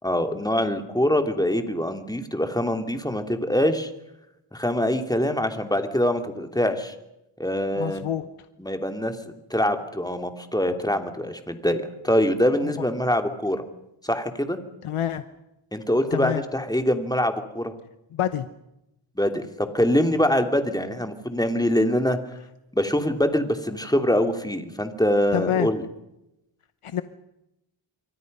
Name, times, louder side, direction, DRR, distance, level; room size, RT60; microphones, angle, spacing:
voice 1, 0.0-3.9 4.5-6.9 7.4-8.1 8.6-13.6 14.0-14.6 15.7-17.7 19.2-22.2 22.7-25.8, left 1 dB, 10° left, 6 dB, 2.9 m, -24 dB
voice 2, 7.8-8.3 14.8-15.2 16.1-16.4 18.1-18.5 25.3-25.7 26.8-27.0, left 10 dB, 85° left, 11 dB, 1.0 m, -27 dB
28.5 x 23.5 x 5.5 m, 0.89 s
cardioid pair, 70°, 50 cm